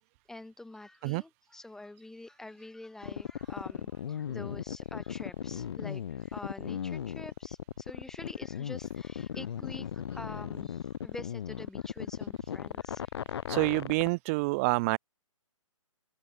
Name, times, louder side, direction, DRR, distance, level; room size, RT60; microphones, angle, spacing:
voice 1, 0.3-13.1, left 2 dB, 5° left, 6.2 m, -47 dB
sound 1, 3.0-14.1, left 9 dB, 50° left, 1.4 m, -36 dB
voice 2, 13.5-15.0, right 26 dB, 25° right, 1.5 m, -27 dB
hypercardioid pair, 145°, 17 cm